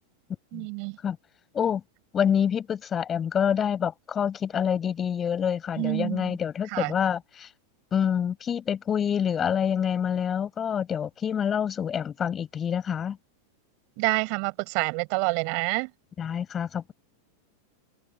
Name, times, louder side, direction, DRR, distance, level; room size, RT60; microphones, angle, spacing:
voice 1, 0.5-1.0 5.8-6.4 6.7-6.9 14.0-15.9, right 40 dB or more, 45° right, 6.5 m, -27 dB
voice 2, 2.1-7.5 7.9-13.2 16.2-16.9, left 8 dB, 25° left, 6.9 m, -27 dB
figure-of-eight pair, 90°, 0 cm